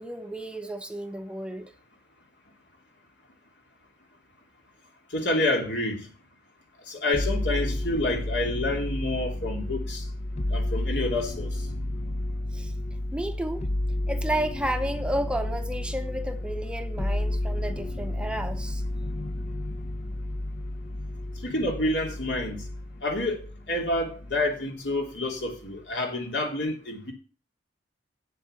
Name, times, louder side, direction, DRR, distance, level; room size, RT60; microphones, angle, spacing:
voice 1, 0.0-1.7 12.5-12.7 13.1-13.7 14.1-18.8, right 1 dB, 5° right, 0.8 m, -32 dB
voice 2, 5.1-6.1 6.9-10.1 10.5-11.6 21.4-22.6 23.0-23.4 23.7-27.1, left 2 dB, 70° left, 3.1 m, -28 dB
sound 1, 7.1-24.6 24.9-25.7, left 1 dB, 35° left, 0.7 m, -31 dB
8.5 x 7.7 x 6.9 m
head